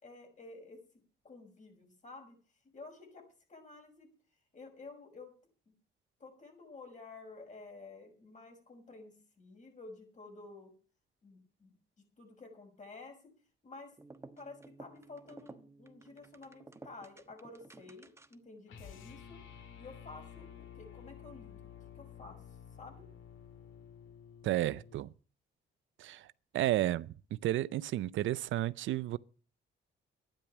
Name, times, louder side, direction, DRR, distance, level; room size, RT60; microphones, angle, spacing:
voice 1, 0.0-0.8 1.2-2.4 2.7-3.2 3.5-4.1 4.5-5.3 6.2-10.7 11.2-13.2 13.6-13.9 14.4-19.4 19.8-21.6 21.9-22.4 22.8-23.1, left 3 dB, 40° left, 6.3 m, -51 dB
sound 1, 13.9-18.6, right 2 dB, 15° right, 1.2 m, -54 dB
sound 2, 18.7-25.1, left 8 dB, 80° left, 2.0 m, -52 dB
voice 2, 24.4-25.1 26.0-26.3 26.5-27.1 27.4-29.2, right 14 dB, 75° right, 0.6 m, -32 dB
12.0 x 10.0 x 7.1 m
cardioid pair, 90°, 20 cm